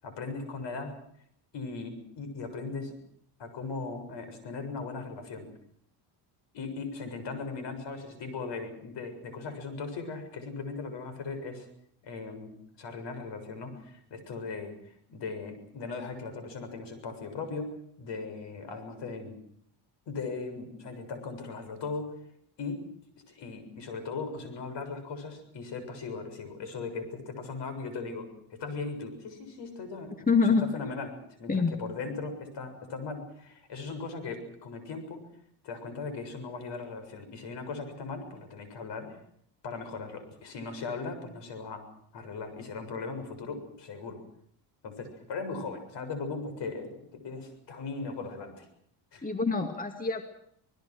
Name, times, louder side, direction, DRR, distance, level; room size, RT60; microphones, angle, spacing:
voice 1, 0.0-1.0 1.5-3.0 3.4-5.5 6.5-11.7 12.0-12.5 12.8-19.4 20.1-22.2 22.6-22.8 23.3-30.3 30.7-35.2 35.6-39.2 39.6-41.8 42.1-44.2 44.8-48.7 49.1-49.3, left 4 dB, 60° left, 9 dB, 7.2 m, -38 dB
voice 2, 30.3-30.7 31.5-31.7 49.2-50.2, left 4 dB, 15° left, 6 dB, 2.3 m, -25 dB
27.0 x 20.5 x 6.3 m, 0.67 s
cardioid pair, 120°, 47 cm